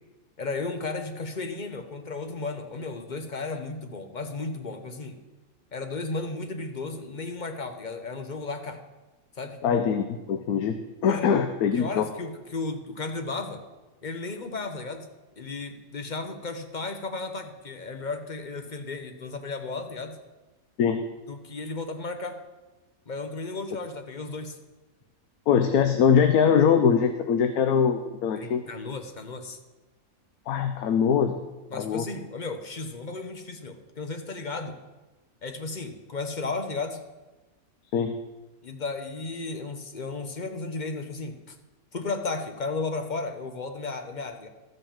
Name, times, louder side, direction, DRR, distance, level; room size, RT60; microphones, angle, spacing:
voice 1, 0.4-5.2 5.7-8.8 9.4-9.6 11.1-11.3 11.7-13.6 14.0-15.1 15.4-20.2 21.3-22.4 23.1-24.6 28.3-29.6 31.7-34.8 35.4-37.0 38.6-41.5 41.9-44.5, left 3 dB, 35° left, 6 dB, 0.9 m, -34 dB
voice 2, 9.6-10.8 11.0-12.1 20.8-21.0 25.5-28.6 30.5-31.3 31.7-32.1 37.9-38.2, left 7 dB, 90° left, 7 dB, 1.2 m, -22 dB
13.0 x 5.5 x 7.2 m, 1.1 s
omnidirectional pair, 1.5 m